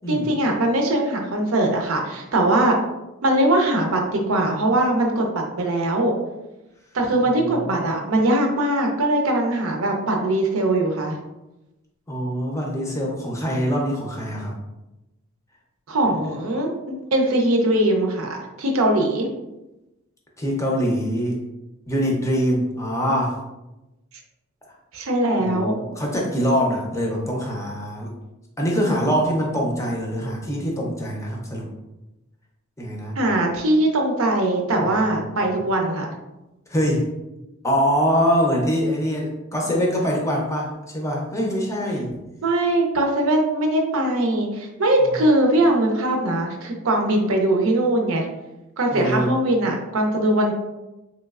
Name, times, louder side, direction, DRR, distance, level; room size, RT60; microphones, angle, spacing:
voice 1, 0.1-2.8 3.2-6.1 6.9-11.2 15.9-19.3 24.9-25.7 33.2-36.1 42.4-48.3 48.8-50.5, right 1 dB, 75° right, 2 dB, 0.6 m, -21 dB
voice 2, 7.3-7.9 12.1-14.6 20.4-21.4 21.9-23.3 25.4-28.1 28.6-31.7 32.8-33.1 34.8-35.0 36.7-37.1 37.6-42.1 45.1-45.2 48.9-49.3, equal, 15° left, -2 dB, 0.5 m, -24 dB
3.1 x 2.9 x 2.3 m, 0.99 s
head